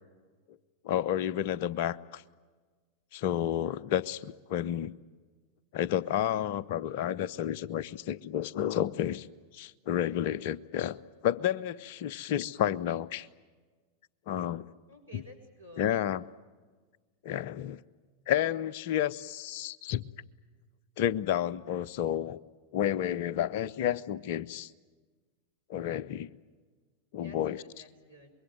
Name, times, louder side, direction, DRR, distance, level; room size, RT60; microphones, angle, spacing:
voice 1, 0.8-2.2 3.1-4.9 5.7-9.3 9.5-11.0 11.2-13.3 14.3-14.7 15.1-15.2 15.8-16.2 17.2-17.8 18.3-20.1 21.0-22.4 22.7-24.7 25.7-26.3 27.1-27.6, left 11 dB, 50° left, 19 dB, 0.7 m, -31 dB
voice 2, 14.9-16.0 27.2-28.3, equal, 90° right, 1 dB, 5.6 m, -52 dB
25.5 x 22.5 x 9.2 m, 1.4 s
figure-of-eight pair, 90°, 0 cm